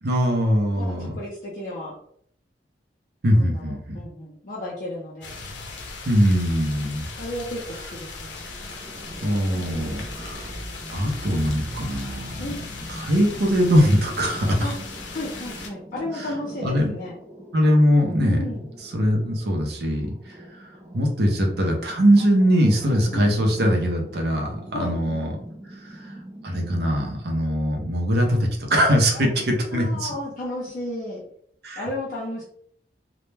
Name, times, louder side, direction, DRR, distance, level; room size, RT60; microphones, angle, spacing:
voice 1, 0.0-1.1 3.2-4.0 6.1-7.0 9.2-10.5 10.9-12.4 12.9-14.7 16.1-16.3 16.6-16.9 17.5-18.4 18.9-20.7 20.9-25.3 25.8-26.1 26.4-30.1 31.6-31.9, equal, 60° right, 1 dB, 0.6 m, -21 dB
voice 2, 0.7-2.0 3.3-5.3 7.2-8.4 9.9-10.1 12.4-12.7 14.6-14.8 15.1-17.2 18.3-18.6 23.1-23.3 24.7-25.0 29.1-29.3 29.7-31.2 31.8-32.4, left 1 dB, 45° left, -7 dB, 0.5 m, -33 dB
sound 1, 5.2-15.7, left 3 dB, 90° left, 0.6 m, -37 dB
sound 2, 8.4-27.2, right 1 dB, 15° right, 0.4 m, -42 dB
2.1 x 2.1 x 3.1 m, 0.65 s
head